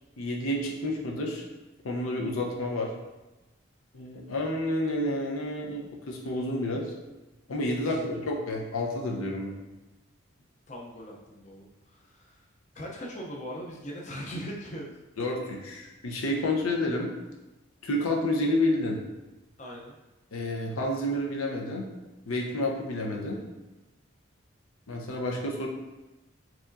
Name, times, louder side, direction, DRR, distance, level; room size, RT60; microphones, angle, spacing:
voice 1, 0.2-1.4 1.8-2.9 3.9-6.8 7.5-9.5 15.2-17.1 17.8-19.0 20.3-21.9 22.3-23.4 24.9-25.7, left 1 dB, 90° left, 0 dB, 0.7 m, -29 dB
voice 2, 10.7-12.3 12.7-14.9 19.6-20.0, equal, 35° left, -2 dB, 0.5 m, -40 dB
4.7 x 2.9 x 2.5 m, 1.1 s
head